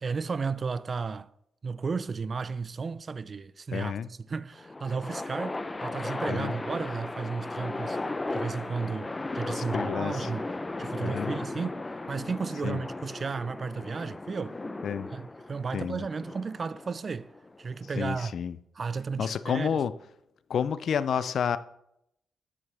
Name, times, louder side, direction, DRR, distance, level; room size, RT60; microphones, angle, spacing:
voice 1, 0.0-1.3 1.6-3.9 4.3-8.0 8.3-10.5 10.8-14.6 15.1-17.3 17.6-18.4 18.8-19.8, right 5 dB, 45° right, 0.4 m, -33 dB
voice 2, 3.7-4.1 6.3-6.5 9.5-10.3 11.0-11.3 12.6-12.8 14.8-15.1 15.7-16.0 18.0-18.6 19.2-19.9 20.5-21.6, left 7 dB, 70° left, 0.4 m, -30 dB
sound 1, 4.5-17.9, left 2 dB, 25° left, 0.6 m, -36 dB
9.8 x 7.7 x 3.4 m
supercardioid pair, 60°, 0 cm